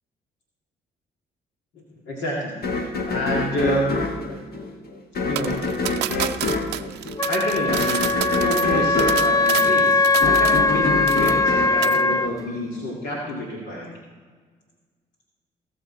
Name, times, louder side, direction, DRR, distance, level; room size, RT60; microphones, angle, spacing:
voice 1, 2.1-2.6 3.1-3.9 5.2-5.5 7.3-8.0 8.4-13.9, left 1 dB, 70° left, -3 dB, 2.0 m, -27 dB
sound 1, 2.6-12.8, left 3 dB, 55° left, 1.5 m, -27 dB
sound 2, 5.4-10.8 11.1-11.5 11.8-12.0, right 14 dB, 65° right, 0.5 m, -30 dB
Wind instrument woodwind instrument, 7.2-12.3, left 3 dB, 20° left, 0.5 m, -20 dB
17.5 x 6.9 x 4.2 m, 1.5 s
hypercardioid pair, 45°, 19 cm